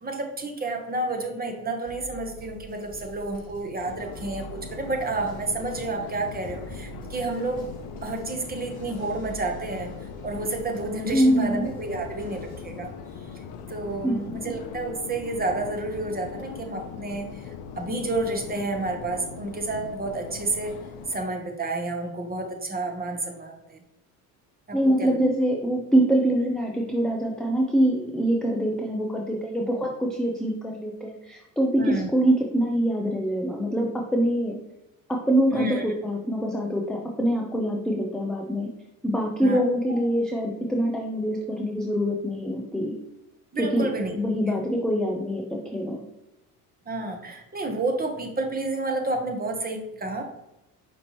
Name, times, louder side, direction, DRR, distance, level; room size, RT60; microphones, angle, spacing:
voice 1, 0.0-7.7 8.0-9.9 10.2-12.9 13.3-13.4 13.7-17.5 17.7-20.7 21.1-23.8 24.7-25.3 31.8-32.1 35.5-35.8 39.4-40.0 43.5-44.1 46.9-50.3, right 2 dB, 20° right, 3 dB, 1.0 m, -30 dB
sound 1, 1.8-12.6, right 1 dB, 15° left, 1.6 m, -45 dB
Subway metro underground, 3.9-21.2, left 6 dB, 55° left, 0.7 m, -40 dB
voice 2, 11.1-11.7 14.0-14.4 24.7-34.6 35.1-38.7 39.0-42.9 43.6-43.9 44.1-46.0, right 1 dB, ahead, 0 dB, 0.4 m, -24 dB
5.1 x 3.0 x 3.1 m, 0.91 s
hypercardioid pair, 75°, 48 cm